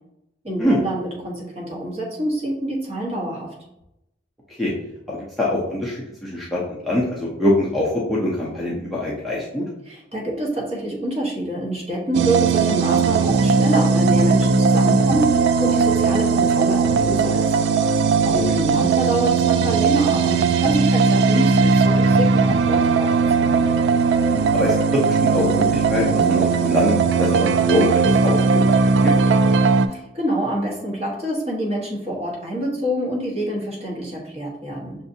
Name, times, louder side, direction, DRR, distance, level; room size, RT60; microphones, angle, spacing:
voice 1, 0.4-3.5 9.9-17.5 18.2-23.7 29.9-35.0, right 1 dB, 35° right, -3 dB, 1.0 m, -26 dB
voice 2, 5.1-9.6 18.3-18.4 24.5-28.4 28.6-28.7 29.0-29.3, left 1 dB, ahead, -5 dB, 0.6 m, -23 dB
sound 1, 12.1-29.9, right 4 dB, 85° right, 0.3 m, -18 dB
6.0 x 2.6 x 2.6 m, 0.86 s
head